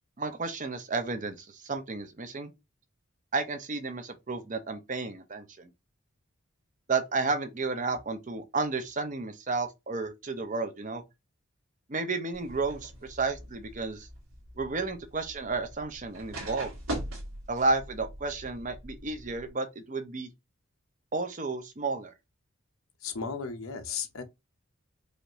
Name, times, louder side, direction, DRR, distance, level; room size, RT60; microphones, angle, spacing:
voice 1, 0.2-2.5 3.3-5.7 6.9-11.0 11.9-14.1 14.6-16.7 17.5-20.3 21.1-22.1, right 3 dB, 35° right, 0.6 m, -32 dB
sound 1, 12.3-19.5, right 1 dB, 80° right, 1.8 m, -42 dB
voice 2, 23.0-24.2, left 6 dB, 75° left, 0.8 m, -35 dB
5.0 x 2.6 x 2.9 m
head